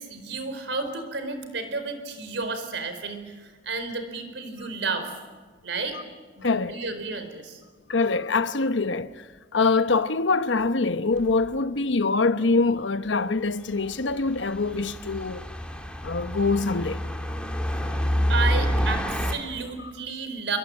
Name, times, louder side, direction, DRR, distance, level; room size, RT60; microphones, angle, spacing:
voice 1, 0.0-5.2 5.6-6.0 6.4-7.6 18.3-20.6, right 4 dB, 70° right, 4.6 m, -32 dB
voice 2, 6.4-6.8 7.9-9.3 9.5-15.4 16.0-17.0, left 3 dB, 80° left, 1.0 m, -24 dB
sound 1, 11.2-11.3 13.9-19.3, equal, 5° left, 2.7 m, -27 dB
27.0 x 24.5 x 8.9 m
head